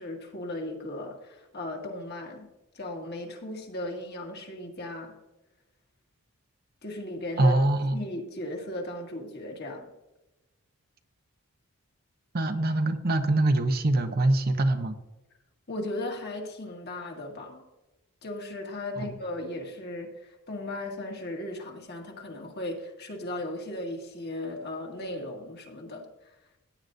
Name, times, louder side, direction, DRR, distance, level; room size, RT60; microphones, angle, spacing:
voice 1, 0.0-5.2 6.8-7.5 7.9-9.9 15.7-17.6 18.2-26.4, left 1 dB, 45° left, 1 dB, 2.0 m, -37 dB
voice 2, 7.4-8.0 12.3-15.0 19.0-19.1, right 2 dB, 45° right, 7 dB, 0.8 m, -24 dB
16.0 x 9.3 x 2.6 m, 1.0 s
head